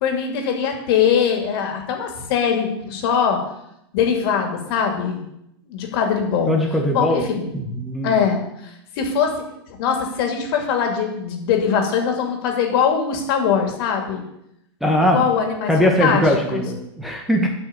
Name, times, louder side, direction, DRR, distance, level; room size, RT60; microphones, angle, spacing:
voice 1, 0.0-3.4 3.9-5.2 5.7-6.5 6.9-7.5 8.0-8.4 9.0-9.4 9.8-14.2 15.0-16.2 16.5-16.6, left 7 dB, 60° left, 3 dB, 2.6 m, -21 dB
voice 2, 6.5-7.3 7.5-8.2 14.8-15.3 15.7-17.5, equal, ahead, 1 dB, 1.6 m, -20 dB
8.3 x 5.9 x 8.0 m, 0.79 s
hypercardioid pair, 125°, 14 cm